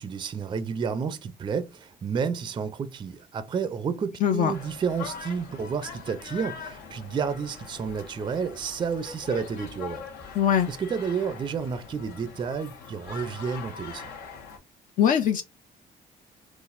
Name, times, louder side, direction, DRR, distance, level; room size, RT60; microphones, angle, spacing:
voice 1, 0.0-10.1 10.7-14.1, right 6 dB, 30° right, 0.4 m, -31 dB
voice 2, 4.2-4.5 10.4-10.7 15.0-15.4, left 9 dB, 50° left, 0.5 m, -21 dB
sound 1, 4.5-14.6, left 6 dB, 80° left, 1.1 m, -42 dB
3.9 x 2.4 x 2.5 m
cardioid pair, 110°, 17 cm